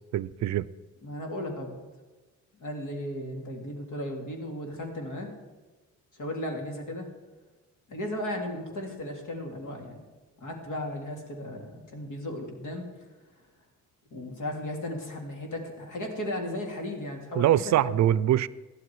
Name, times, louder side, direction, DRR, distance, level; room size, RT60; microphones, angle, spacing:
voice 1, 0.1-0.7 17.3-18.5, right 12 dB, 65° right, 0.5 m, -23 dB
voice 2, 1.0-1.8 2.6-5.3 6.1-7.1 7.9-10.0 10.4-12.8 14.1-18.0, left 1 dB, 75° left, 3.2 m, -35 dB
14.5 x 12.0 x 4.8 m
cardioid pair, 90°, 30 cm